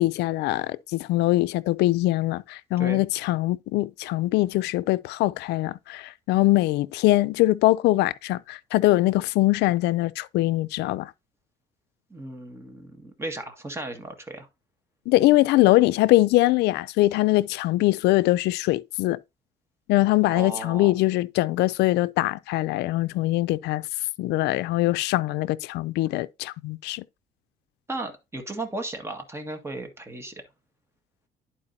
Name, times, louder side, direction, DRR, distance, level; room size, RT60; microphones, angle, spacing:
voice 1, 0.0-11.1 15.1-19.2 19.9-23.8 24.2-27.0, left 17 dB, 80° left, 0.4 m, -22 dB
voice 2, 12.1-14.5 20.3-20.9 27.9-30.4, right 2 dB, 15° right, 1.7 m, -35 dB
11.0 x 4.6 x 2.7 m
cardioid pair, 110°, 17 cm